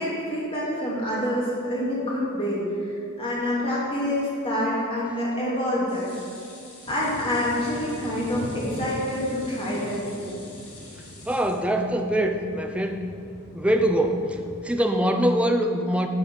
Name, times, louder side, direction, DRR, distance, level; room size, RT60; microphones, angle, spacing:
voice 1, 0.0-6.1 6.9-10.4, left 1 dB, 25° left, -6 dB, 2.6 m, -27 dB
sound 1, 5.9-12.2 12.6-12.7 13.0-13.1, left 2 dB, 80° left, 2.1 m, -47 dB
sound 2, 6.9-14.7, left 1 dB, 50° left, 0.8 m, -41 dB
voice 2, 11.3-13.0 13.5-14.4 14.6-16.1, right 1 dB, 5° right, 5 dB, 0.5 m, -23 dB
11.5 x 5.1 x 5.5 m, 2.4 s
head